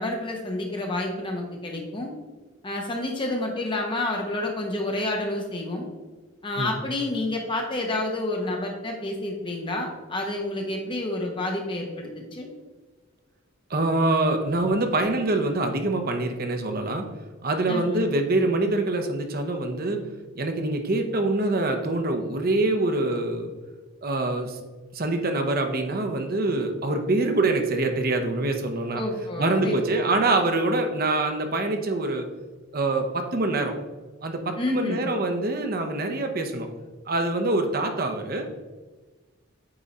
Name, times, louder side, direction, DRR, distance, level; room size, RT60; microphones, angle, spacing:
voice 1, 0.0-2.1 2.6-5.9 6.4-12.5 17.7-18.0 28.9-30.1 34.6-35.1, left 2 dB, 25° left, 1 dB, 1.1 m, -29 dB
voice 2, 13.7-17.0 17.4-20.0 20.3-23.5 24.0-24.6 24.9-29.0 29.4-32.3 32.7-33.7 34.2-36.7 37.1-38.5, right 2 dB, 45° right, 5 dB, 0.8 m, -25 dB
8.9 x 3.7 x 4.2 m, 1.3 s
head